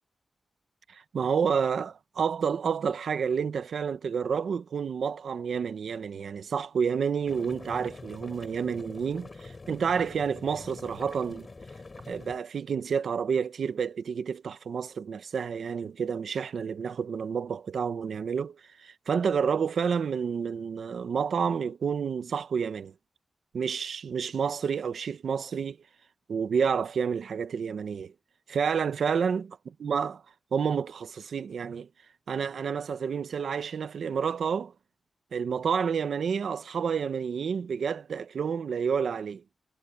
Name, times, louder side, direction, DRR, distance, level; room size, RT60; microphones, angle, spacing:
voice 1, 0.9-11.5 12.1-22.9 23.5-25.8 26.3-28.1 28.5-29.5 29.8-30.2 30.5-31.9 32.3-34.7 35.3-39.4, right 6 dB, 75° right, 1.1 m, -29 dB
sound 1, 7.2-12.4, left 3 dB, 30° left, 4.1 m, -45 dB
wide cardioid pair, 160°, 0 cm